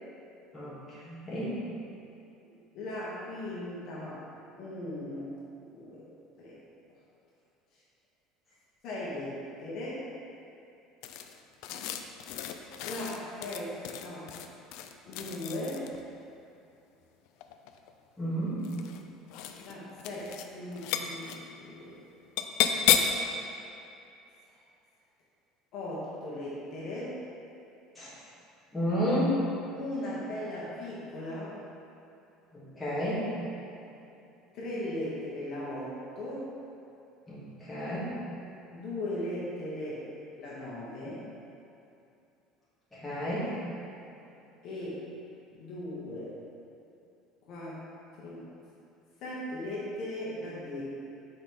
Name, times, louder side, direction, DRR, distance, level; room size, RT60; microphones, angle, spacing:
voice 1, 0.5-1.6 18.2-18.6 27.9-28.1 28.7-29.4 32.5-33.2 37.3-38.1 42.9-43.5, equal, 5° left, -11 dB, 1.4 m, -31 dB
voice 2, 2.7-4.2 4.6-5.3 5.7-6.0 6.4-6.6 8.8-10.0 12.8-14.3 15.1-15.9 19.6-22.0 24.5-24.6 25.7-27.2 29.8-31.5 34.5-36.5 38.7-40.0 40.4-41.3 44.6-45.0 45.5-46.3 47.5-47.8 48.2-48.5 49.2-50.8, left 1 dB, 40° left, -8 dB, 1.2 m, -38 dB
sound 1, 11.0-16.0 17.3-17.9 18.6-19.0 19.3-19.7 20.0-20.5 20.7-21.4 22.4-23.2, left 9 dB, 60° left, 0.3 m, -32 dB
4.5 x 4.0 x 5.3 m, 2.8 s
cardioid pair, 175°, 0 cm